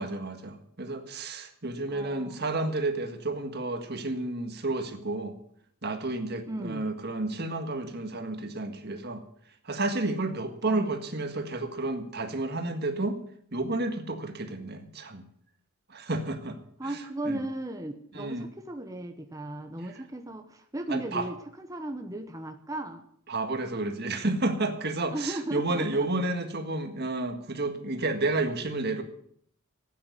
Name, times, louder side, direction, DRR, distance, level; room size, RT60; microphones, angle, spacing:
voice 1, 0.0-5.4 5.8-9.2 9.6-13.2 13.5-15.3 15.9-16.6 17.2-17.4 18.1-18.4 20.9-21.2 23.3-29.0, right 2 dB, 45° right, 6 dB, 1.7 m, -31 dB
voice 2, 1.9-2.4 6.5-6.9 10.7-11.0 16.8-23.1 25.1-26.1, right 1 dB, 15° right, 6 dB, 1.0 m, -36 dB
13.5 x 9.3 x 8.3 m, 0.64 s
head